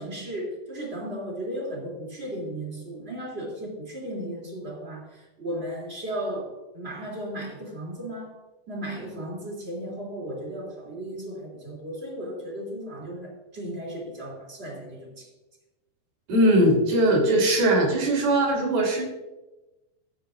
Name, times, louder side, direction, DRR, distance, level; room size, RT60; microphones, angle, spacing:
voice 1, 0.0-8.3 8.7-15.3, right 1 dB, 20° right, -2 dB, 2.3 m, -35 dB
voice 2, 16.3-19.0, right 1 dB, 65° right, -1 dB, 4.9 m, -20 dB
15.0 x 10.5 x 2.5 m, 1.0 s
omnidirectional pair, 4.7 m